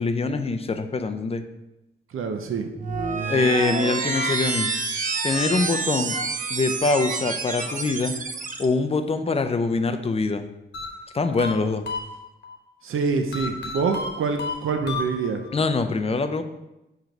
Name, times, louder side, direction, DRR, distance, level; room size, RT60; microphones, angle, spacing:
voice 1, 0.0-1.4 3.3-4.7 5.2-6.2 6.5-8.1 8.6-10.5 11.1-11.9 15.5-16.4, left 3 dB, 30° left, 8 dB, 0.5 m, -24 dB
voice 2, 2.1-2.7 12.8-15.4, right 5 dB, 80° right, 5 dB, 0.6 m, -26 dB
sound 1, 2.7-8.7, right 4 dB, 40° right, 0.6 m, -28 dB
sound 2, 10.7-12.6 13.3-15.6, left 3 dB, 55° left, 1.1 m, -33 dB
4.9 x 4.5 x 5.2 m, 0.95 s
wide cardioid pair, 145°, 21 cm